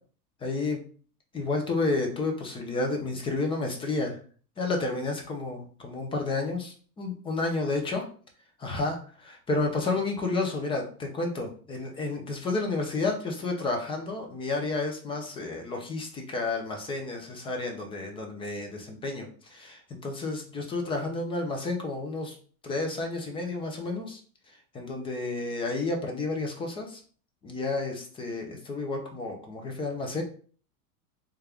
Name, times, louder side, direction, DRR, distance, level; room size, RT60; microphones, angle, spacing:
voice 1, 0.4-0.8 1.3-4.2 4.6-8.0 8.6-22.4 22.6-24.2 24.7-27.0 27.4-30.2, left 3 dB, 15° left, 2 dB, 0.3 m, -31 dB
3.4 x 2.2 x 3.4 m, 0.42 s
hypercardioid pair, 115°, 48 cm